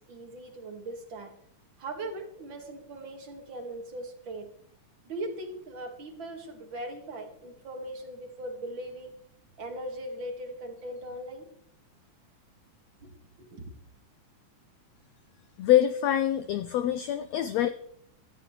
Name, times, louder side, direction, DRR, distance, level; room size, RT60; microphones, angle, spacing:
voice 1, 0.1-1.3 1.8-4.5 5.0-9.1 9.6-11.5 13.0-13.7, right 1 dB, 40° right, 4 dB, 2.4 m, -39 dB
voice 2, 15.6-17.7, left 11 dB, 80° left, 11 dB, 1.5 m, -25 dB
18.0 x 13.5 x 3.3 m, 0.68 s
omnidirectional pair, 3.7 m